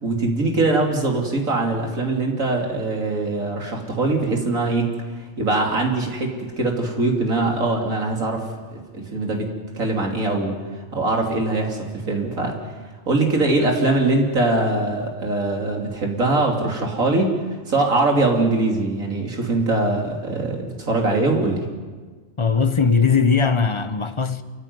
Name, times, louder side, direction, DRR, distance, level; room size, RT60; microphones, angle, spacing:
voice 1, 0.0-4.9 5.4-9.5 9.8-10.6 10.9-11.8 12.1-12.6 13.1-17.3 17.7-21.7, right 2 dB, 85° right, 3.5 m, -22 dB
voice 2, 22.4-24.4, left 5 dB, 25° left, 1.0 m, -19 dB
28.0 x 15.0 x 9.5 m
omnidirectional pair, 1.4 m